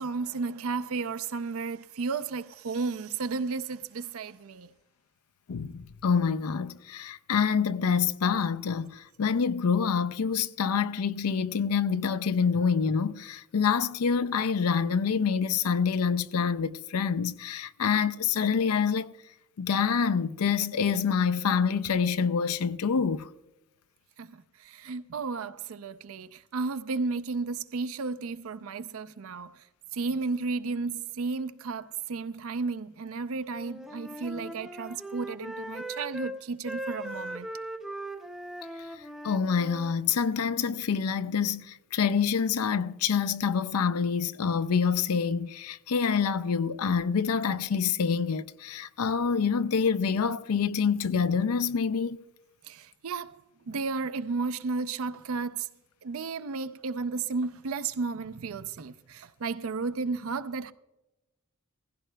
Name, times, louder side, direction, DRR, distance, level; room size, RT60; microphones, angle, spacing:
voice 1, 0.0-4.7 24.2-29.6 29.9-37.5 52.6-53.4 53.7-55.7 56.0-60.7, right 4 dB, 70° right, 0.5 m, -33 dB
voice 2, 5.5-19.1 19.6-23.3 39.2-52.2, left 6 dB, 90° left, 0.5 m, -26 dB
Wind instrument woodwind instrument, 33.5-36.4 36.6-40.0, right 1 dB, ahead, 0.5 m, -39 dB
18.0 x 15.5 x 2.2 m
head